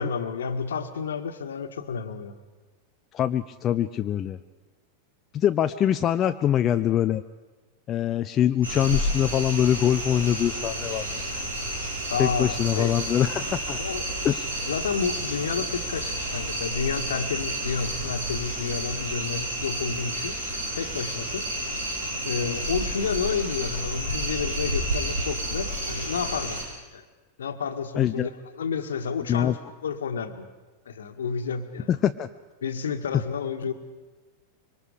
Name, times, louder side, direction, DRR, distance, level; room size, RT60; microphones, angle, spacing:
voice 1, 0.0-2.4 12.1-12.9 13.8-14.0 14.7-21.7 22.2-26.6 26.9-27.0 27.4-30.5 30.9-31.9 32.6-33.7, left 6 dB, 65° left, 8 dB, 1.7 m, -30 dB
voice 2, 3.1-4.4 5.3-7.2 7.9-11.1 12.2-13.8 14.2-14.5 28.0-28.3 29.3-29.5 31.9-32.3, left 10 dB, 30° left, 9 dB, 0.6 m, -24 dB
sound 1, 8.6-26.6, right 1 dB, 75° right, 5.6 m, -30 dB
25.5 x 24.0 x 5.1 m, 1.2 s
figure-of-eight pair, 90°, 0 cm